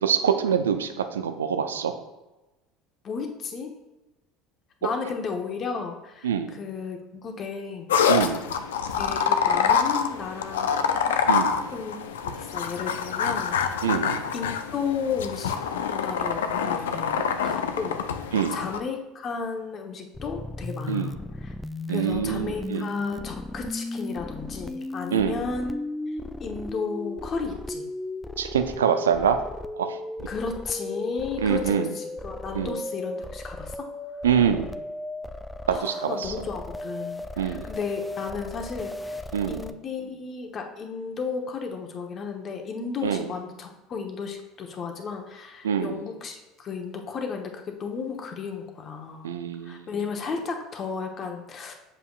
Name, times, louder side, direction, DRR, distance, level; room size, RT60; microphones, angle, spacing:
voice 1, 0.0-1.9 4.8-4.9 6.2-6.6 8.1-8.5 11.3-11.7 13.8-14.2 17.2-17.3 18.3-18.6 20.9-21.1 21.9-22.9 25.1-25.4 28.4-29.4 29.8-30.0 31.4-31.9 32.5-32.7 34.2-34.7 35.7-36.3 37.4-37.7 39.3-39.6 43.0-43.3 45.6-46.0 49.2-49.9, right 8 dB, 90° right, 8 dB, 0.4 m, -25 dB
voice 2, 3.0-3.7 4.8-7.9 9.0-11.1 11.7-12.0 12.2-13.7 14.3-15.6 15.8-17.1 17.4-18.2 18.5-21.1 21.4-21.5 21.9-25.8 26.1-27.9 30.3-33.9 35.7-49.3 49.6-51.7, left 5 dB, 45° left, 3 dB, 1.0 m, -34 dB
sound 1, 7.9-18.8, left 7 dB, 85° left, 0.4 m, -26 dB
sound 2, 20.1-39.7, left 2 dB, 10° left, 0.3 m, -36 dB
7.3 x 5.3 x 2.4 m, 1.1 s
hypercardioid pair, 75°, 0 cm